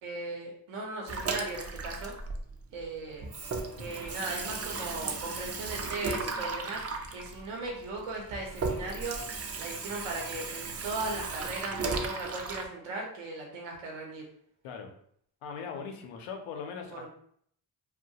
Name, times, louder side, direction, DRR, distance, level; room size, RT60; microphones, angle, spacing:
voice 1, 0.0-2.1 2.7-3.3 3.8-6.8 7.1-9.2 9.6-14.2 16.9-17.1, right 2 dB, 75° right, 0 dB, 0.8 m, -38 dB
Water tap faucet / Sink (filling or washing), 1.1-2.9 3.2-12.6, right 4 dB, 30° right, 0.4 m, -36 dB
voice 2, 15.4-17.1, left 6 dB, 85° left, 4 dB, 0.6 m, -40 dB
2.2 x 2.1 x 2.7 m, 0.65 s
supercardioid pair, 50°, 50 cm